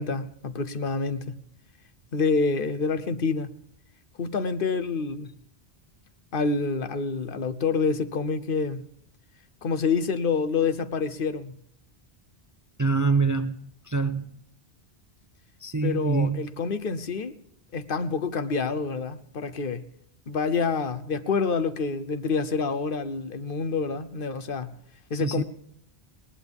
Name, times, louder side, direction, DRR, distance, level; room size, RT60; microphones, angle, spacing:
voice 1, 0.0-1.4 2.1-3.5 4.2-5.3 6.3-8.8 9.6-11.5 15.8-17.4 17.7-19.9 20.3-24.8 25.1-25.4, left 4 dB, 60° left, 1.0 m, -27 dB
voice 2, 12.8-14.3 15.6-16.5 25.1-25.4, right 4 dB, 25° right, 0.4 m, -25 dB
20.0 x 19.0 x 3.5 m
omnidirectional pair, 1.1 m